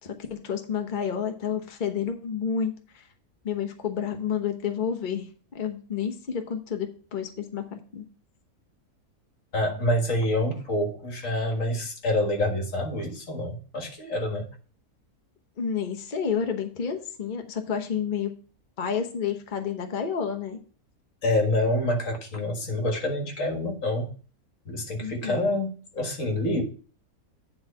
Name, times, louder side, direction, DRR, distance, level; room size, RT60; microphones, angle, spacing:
voice 1, 0.0-3.0 3.4-5.3 5.5-8.1 15.6-18.3 18.8-20.6 25.0-25.5, left 7 dB, 35° left, 5 dB, 1.0 m, -30 dB
voice 2, 9.5-14.5 21.2-24.1 24.7-26.6, left 1 dB, 55° left, 3 dB, 2.0 m, -27 dB
9.5 x 4.0 x 5.6 m, 0.39 s
omnidirectional pair, 1.6 m